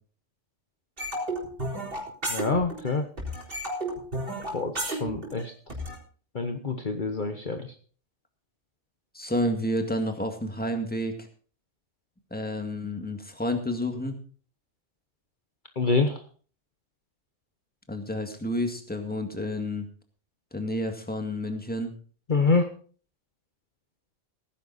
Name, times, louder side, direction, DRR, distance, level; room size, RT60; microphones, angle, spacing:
sound 1, 1.0-2.9 3.2-6.0, right 1 dB, 50° right, 4.2 m, -32 dB
voice 1, 2.3-3.1 4.5-5.5 6.3-7.7 15.8-16.2 22.3-22.7, left 3 dB, 45° left, 5 dB, 1.2 m, -26 dB
voice 2, 9.1-11.2 12.3-14.2 17.9-19.9 20.5-21.9, left 1 dB, 5° left, 5 dB, 2.0 m, -30 dB
17.5 x 10.0 x 4.1 m, 0.41 s
omnidirectional pair, 1.2 m